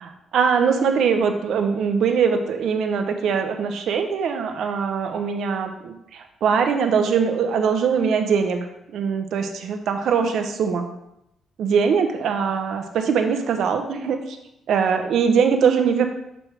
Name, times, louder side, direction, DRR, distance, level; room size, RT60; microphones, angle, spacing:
voice 1, 0.0-10.9 11.6-14.4 14.7-16.1, right 6 dB, 75° right, 6 dB, 0.7 m, -22 dB
6.4 x 6.0 x 3.3 m, 0.80 s
cardioid pair, 75°, 0 cm